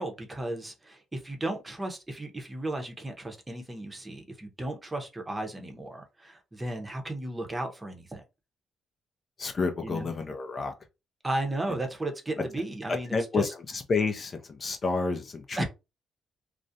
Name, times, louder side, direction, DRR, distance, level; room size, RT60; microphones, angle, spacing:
voice 1, 0.0-8.2 9.8-10.1 11.2-13.4 15.6-15.7, right 1 dB, 20° right, 0.7 m, -34 dB
voice 2, 9.4-10.7 11.7-11.8 12.9-15.6, left 4 dB, 40° left, 0.4 m, -30 dB
2.4 x 2.0 x 2.7 m
cardioid pair, 90°, 0 cm